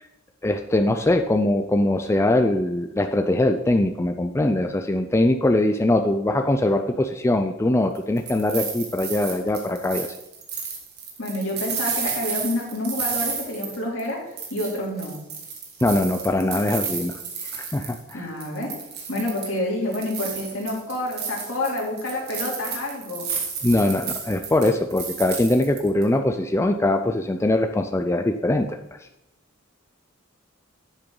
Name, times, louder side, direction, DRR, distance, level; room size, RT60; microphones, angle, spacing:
voice 1, 0.4-10.1 15.8-17.2 17.4-18.2 23.6-28.8, left 1 dB, 15° left, 6 dB, 0.4 m, -22 dB
sound 1, 8.0-14.1 14.4-18.1 18.4-19.6 19.9-26.0, right 6 dB, 55° right, 1.9 m, -32 dB
voice 2, 11.2-14.2 14.5-15.2 18.1-18.7 19.1-23.3, left 1 dB, 70° left, -3 dB, 2.9 m, -28 dB
9.7 x 7.4 x 3.8 m, 0.89 s
head